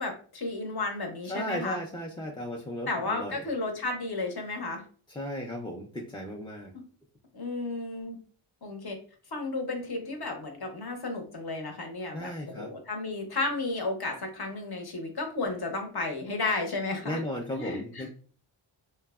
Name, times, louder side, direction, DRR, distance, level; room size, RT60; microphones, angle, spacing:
voice 1, 0.0-1.8 2.9-4.8 7.3-8.2 8.6-9.0 9.3-17.2 17.5-18.1, left 3 dB, 50° left, 4 dB, 0.8 m, -33 dB
voice 2, 1.2-3.4 5.1-6.7 12.1-12.7 17.0-18.1, equal, 10° left, 0 dB, 0.4 m, -35 dB
3.0 x 2.1 x 2.3 m, 0.42 s
cardioid pair, 50°, 49 cm